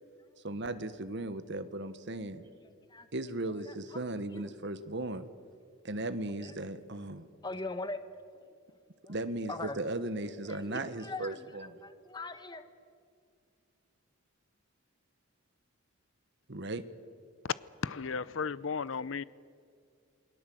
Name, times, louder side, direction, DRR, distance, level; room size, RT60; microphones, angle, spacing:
voice 1, 0.4-2.5 3.1-5.3 5.8-7.3 9.1-11.7 16.5-16.8, right 2 dB, 55° right, 1.3 m, -37 dB
voice 2, 2.6-3.1 3.5-4.5 6.4-6.5 7.4-8.0 8.3-8.4 9.0-9.1 9.5-9.8 10.5-12.6, left 3 dB, 20° left, 1.2 m, -42 dB
voice 3, 17.8-19.2, left 5 dB, 70° left, 0.7 m, -34 dB
28.0 x 21.5 x 7.8 m
head